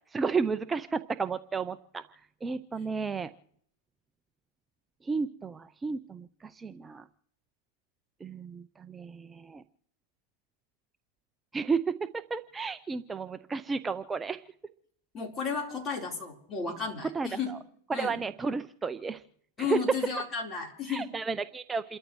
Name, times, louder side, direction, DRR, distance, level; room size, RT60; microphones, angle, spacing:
voice 1, 0.0-3.3 5.0-7.1 8.2-9.6 11.5-11.8 12.1-14.4 17.1-17.6 17.9-19.2 19.6-19.8 20.9-22.0, right 4 dB, 15° right, 10 dB, 0.5 m, -33 dB
voice 2, 15.1-17.5 17.9-18.2 19.6-21.1, left 5 dB, 25° left, 0 dB, 4.1 m, -33 dB
29.0 x 13.0 x 3.2 m, 0.68 s
hypercardioid pair, 125°, 0 cm